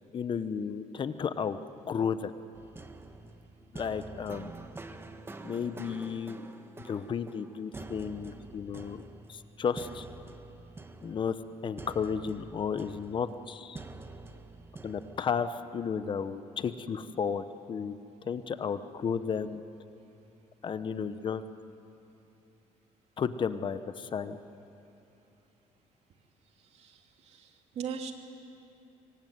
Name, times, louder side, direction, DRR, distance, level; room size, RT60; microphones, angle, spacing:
voice 1, 0.1-1.6 1.9-2.3 3.7-4.5 5.4-6.5 6.8-9.0 9.3-10.1 11.0-11.4 11.6-13.8 14.8-17.9 18.3-19.6 20.6-21.4 23.2-24.4, left 6 dB, 40° left, 11 dB, 0.9 m, -33 dB
sound 1, 2.5-15.5, right 3 dB, 15° right, 1.4 m, -47 dB
voice 2, 26.6-28.1, right 6 dB, 55° right, 3 dB, 2.9 m, -40 dB
25.5 x 24.0 x 9.5 m, 2.8 s
cardioid pair, 125°, 13 cm